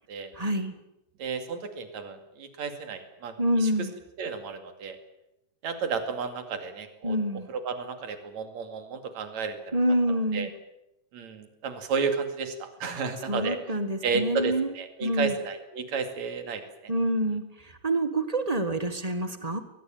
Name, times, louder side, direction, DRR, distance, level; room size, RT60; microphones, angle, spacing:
voice 1, 0.3-0.7 3.4-3.9 7.0-7.5 9.7-10.5 13.3-14.7 15.0-15.3 16.9-17.4 17.8-19.6, right 1 dB, 20° right, 9 dB, 1.0 m, -26 dB
voice 2, 1.2-3.7 4.2-5.0 5.6-9.8 10.1-10.5 11.1-16.9, right 5 dB, 60° right, 7 dB, 3.6 m, -33 dB
22.0 x 20.0 x 9.0 m, 0.89 s
omnidirectional pair, 3.7 m